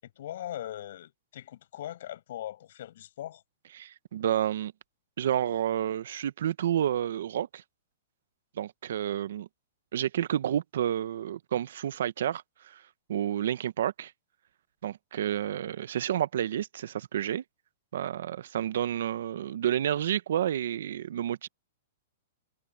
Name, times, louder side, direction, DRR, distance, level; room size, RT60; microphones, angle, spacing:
voice 1, 0.0-3.4, left 12 dB, 60° left, 7.2 m, -40 dB
voice 2, 3.7-4.7 5.2-7.6 8.6-9.5 9.9-12.8 13.1-14.1 14.8-17.4 17.9-21.5, right 10 dB, 70° right, 0.9 m, -30 dB
hypercardioid pair, 165°, 0 cm